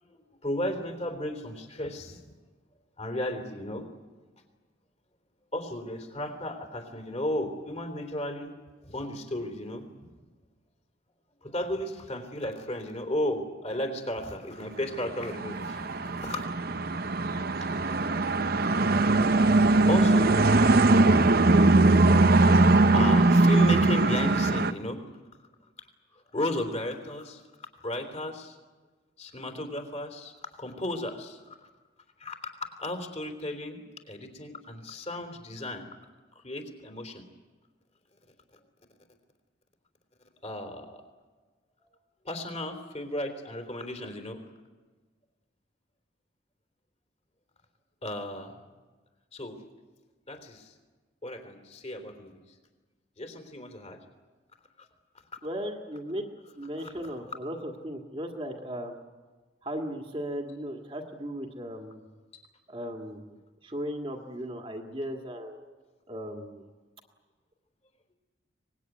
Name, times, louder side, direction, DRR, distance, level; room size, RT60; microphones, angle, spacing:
voice 1, 0.0-2.2 3.0-3.9 5.5-8.5 8.8-9.9 11.4-16.6 17.6-18.1 19.3-19.4 19.9-20.4 22.8-25.0 26.1-27.4 27.8-28.6 29.2-31.7 32.2-33.8 34.1-35.9 36.4-37.2 40.4-41.0 41.8-41.9 42.2-44.4 48.0-48.7 49.3-49.6 50.3-50.7 51.2-52.3 53.2-54.0 54.8-54.9 56.8-56.9 62.3-62.4, left 1 dB, 30° left, 5 dB, 3.5 m, -34 dB
sound 1, 15.1-24.7, right 2 dB, 50° right, 0.8 m, -21 dB
voice 2, 55.4-56.3 56.6-59.0 59.6-62.1 62.7-63.4 63.6-65.7 66.1-66.7, equal, 25° right, 2 dB, 2.0 m, -36 dB
24.5 x 20.5 x 9.3 m, 1.3 s
head